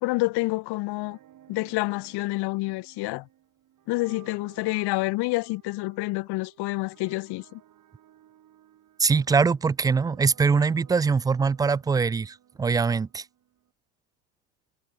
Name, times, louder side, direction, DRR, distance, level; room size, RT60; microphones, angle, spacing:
voice 1, 0.0-1.2 1.5-3.3 3.9-7.6, left 22 dB, 55° left, 2.6 m, -28 dB
sound 1, 0.8-13.7, right 11 dB, 40° right, 7.5 m, -56 dB
voice 2, 9.0-13.3, right 5 dB, 10° right, 0.3 m, -23 dB
hypercardioid pair, 90°, 47 cm